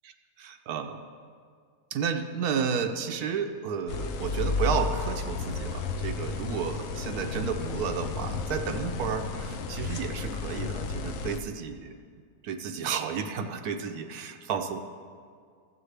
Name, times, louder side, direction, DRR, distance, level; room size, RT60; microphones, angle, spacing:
voice 1, 0.4-1.0 1.9-11.9 12.4-14.8, right 6 dB, 90° right, 6 dB, 1.1 m, -32 dB
sound 1, 3.9-11.4, left 4 dB, 65° left, 0.8 m, -32 dB
13.5 x 7.4 x 3.3 m, 2.1 s
omnidirectional pair, 1.6 m